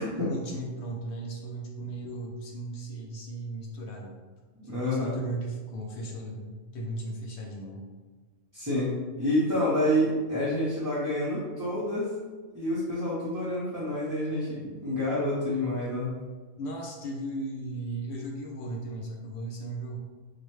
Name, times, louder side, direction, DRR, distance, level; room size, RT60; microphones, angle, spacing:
voice 1, 0.0-4.2 4.7-7.9 16.6-20.0, right 2 dB, 65° left, 0 dB, 0.8 m, -36 dB
voice 2, 4.6-5.1 8.5-12.1 12.5-16.1, left 1 dB, 20° right, -9 dB, 0.6 m, -28 dB
4.7 x 2.2 x 3.1 m, 1.3 s
omnidirectional pair, 1.3 m